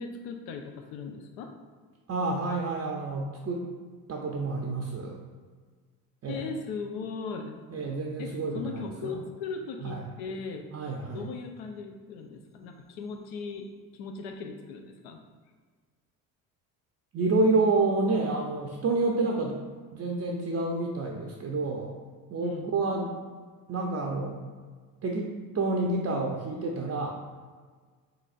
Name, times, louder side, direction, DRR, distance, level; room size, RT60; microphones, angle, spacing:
voice 1, 0.0-1.5 6.3-7.6 8.2-10.7 11.1-13.7 13.9-15.2 22.4-22.7, left 5 dB, 70° left, 4 dB, 0.7 m, -38 dB
voice 2, 2.1-3.7 4.1-5.2 6.2-6.4 7.7-9.1 9.8-10.0 10.7-11.2 17.1-19.6 19.9-21.9 22.3-23.1 23.7-24.4 25.0-27.2, right 3 dB, 30° right, -1 dB, 0.5 m, -29 dB
4.0 x 3.9 x 2.4 m, 1.5 s
hypercardioid pair, 50°, 47 cm